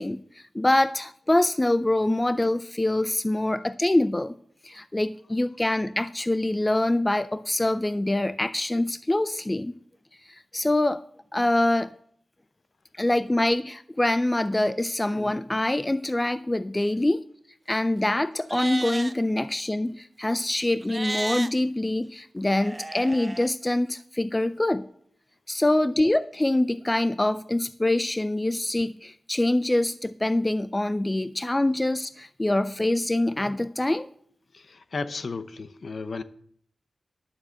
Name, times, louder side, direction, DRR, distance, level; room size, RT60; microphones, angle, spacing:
voice 1, 0.0-4.3 4.6-9.7 10.5-11.0 11.3-11.9 13.0-17.2 17.7-24.9 25.5-34.1, left 1 dB, 20° left, 13 dB, 0.4 m, -25 dB
Livestock farm animals working animals, 18.4-19.1 20.8-21.5 22.5-23.5, right 2 dB, 25° right, 0.6 m, -33 dB
voice 2, 34.5-36.2, left 4 dB, 60° left, 12 dB, 0.8 m, -34 dB
11.0 x 7.3 x 6.3 m, 0.62 s
wide cardioid pair, 90°, 0 cm